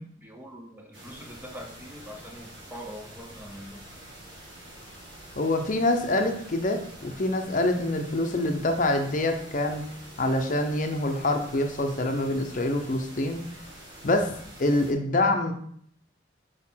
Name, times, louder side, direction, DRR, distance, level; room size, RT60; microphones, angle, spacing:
voice 1, 0.0-3.9, equal, 10° right, 2 dB, 0.9 m, -43 dB
sound 1, 0.9-14.9, right 1 dB, 75° right, 1.9 m, -46 dB
voice 2, 5.4-9.8 10.2-13.4 14.0-14.3 14.6-15.5, left 2 dB, 45° left, 4 dB, 0.7 m, -25 dB
5.1 x 4.4 x 5.6 m, 0.63 s
head